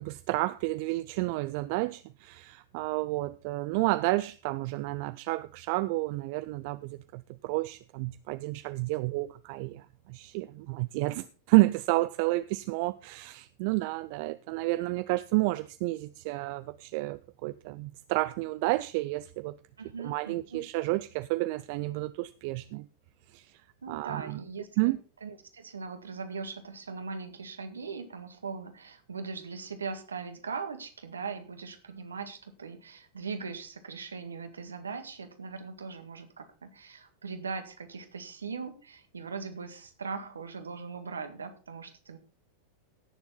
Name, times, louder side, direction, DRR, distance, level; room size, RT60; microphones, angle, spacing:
voice 1, 0.0-19.6 20.0-22.9 23.3-23.5 23.9-24.4 24.8-25.0, right 20 dB, 45° right, 0.4 m, -30 dB
voice 2, 19.8-20.6 23.8-42.2, right 5 dB, 70° right, 1.8 m, -40 dB
17.0 x 7.1 x 4.1 m
figure-of-eight pair, 90°, 0 cm